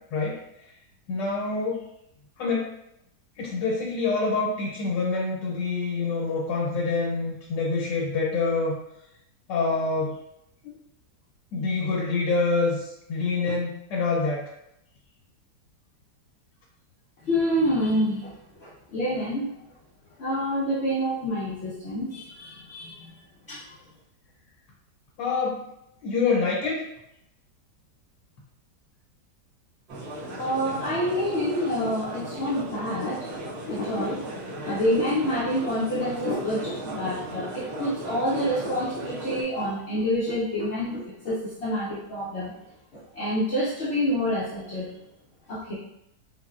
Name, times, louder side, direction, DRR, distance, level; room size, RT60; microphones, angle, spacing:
voice 1, 1.1-1.8 2.4-2.7 3.4-8.7 9.5-10.2 10.6-10.7 11.5-14.5 25.2-25.6 26.0-26.8, left 3 dB, 90° left, -4 dB, 1.3 m, -26 dB
voice 2, 17.2-18.3 18.6-19.5 20.2-23.1 23.5-23.6 30.4-33.3 33.7-42.5 42.9-45.0 45.5-45.7, equal, 70° left, -6 dB, 0.6 m, -27 dB
sound 1, 29.9-39.4, right 1 dB, 65° right, 1.1 m, -37 dB
3.9 x 2.0 x 2.3 m, 0.82 s
omnidirectional pair, 1.9 m